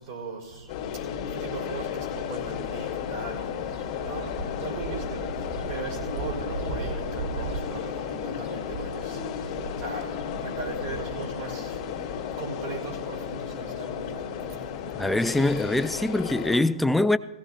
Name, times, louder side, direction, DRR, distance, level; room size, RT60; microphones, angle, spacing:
voice 1, 0.1-0.4 1.4-3.5 4.0-5.3 5.7-9.2 9.8-10.1 10.4-11.7 12.4-14.2, right 4 dB, 45° right, 4.8 m, -38 dB
sound 1, 0.7-16.6, left 7 dB, 40° left, 2.7 m, -33 dB
sound 2, 3.5-16.1, right 3 dB, 30° right, 1.1 m, -40 dB
voice 2, 15.0-17.2, left 2 dB, 5° left, 0.3 m, -23 dB
17.0 x 16.5 x 2.7 m
hypercardioid pair, 130°, 3 cm